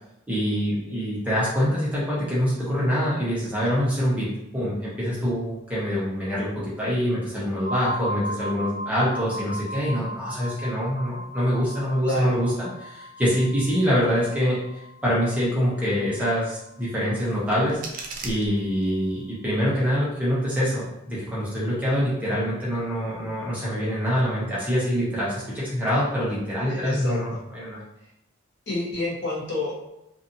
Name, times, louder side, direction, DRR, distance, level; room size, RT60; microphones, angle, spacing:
voice 1, 0.3-14.6 15.0-17.8 18.2-27.8, equal, 5° right, -8 dB, 0.7 m, -25 dB
sound 1, 7.6-17.3, equal, 25° left, 1.3 m, -37 dB
voice 2, 12.0-12.4 26.7-27.4 28.7-29.7, left 2 dB, 55° left, -6 dB, 0.9 m, -28 dB
sound 2, 17.2-19.2, right 3 dB, 40° right, 0.3 m, -39 dB
2.7 x 2.5 x 2.5 m, 0.86 s
head